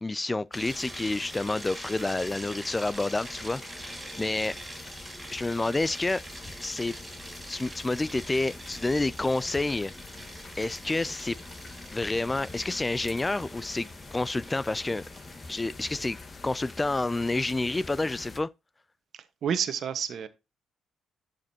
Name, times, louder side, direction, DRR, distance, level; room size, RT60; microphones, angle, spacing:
voice 1, 0.0-4.5 5.3-6.2 6.6-6.9 7.5-9.9 10.6-11.4 11.9-15.0 15.5-16.2 16.4-18.5, left 2 dB, 20° left, 0.3 m, -29 dB
sound 1, 0.5-18.4, left 3 dB, 35° left, 1.5 m, -45 dB
sound 2, 0.5-16.8, right 1 dB, 15° right, 3.8 m, -45 dB
voice 2, 19.1-20.3, right 8 dB, 65° right, 1.2 m, -30 dB
12.0 x 5.1 x 2.8 m
cardioid pair, 90°, 0 cm